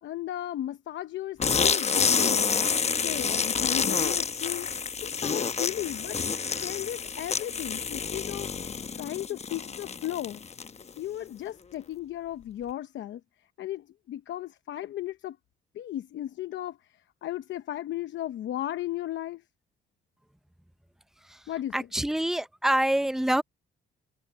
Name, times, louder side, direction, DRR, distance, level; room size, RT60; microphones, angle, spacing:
voice 1, 0.0-2.5 3.0-4.7 5.0-6.2 6.6-8.5 8.9-10.4 11.0-13.2 13.6-15.4 15.7-16.8 17.2-19.4 21.5-21.7, left 13 dB, 70° left, 0.8 m, -35 dB
sound 1, 1.4-10.9, left 6 dB, 35° left, 0.9 m, -28 dB
voice 2, 21.7-23.4, right 1 dB, ahead, 0.6 m, -26 dB
cardioid pair, 90°, 20 cm